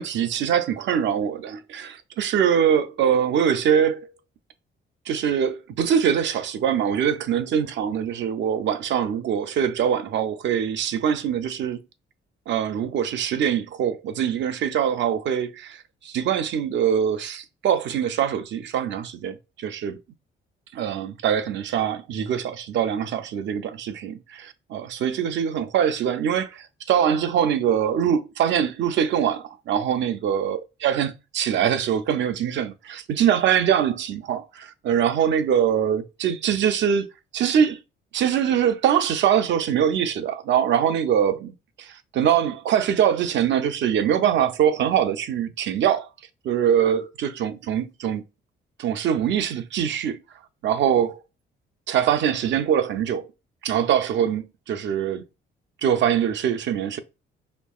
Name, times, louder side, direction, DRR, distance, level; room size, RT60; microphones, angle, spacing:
voice 1, 0.0-4.1 5.1-11.8 12.5-20.0 20.7-37.8 38.1-41.5 41.8-46.1 46.4-48.2 48.8-50.2 50.6-51.2 51.9-53.3 53.6-55.2 55.8-57.0, right 9 dB, 70° right, 0.5 m, -23 dB
4.4 x 2.8 x 2.3 m
cardioid pair, 90°, 20 cm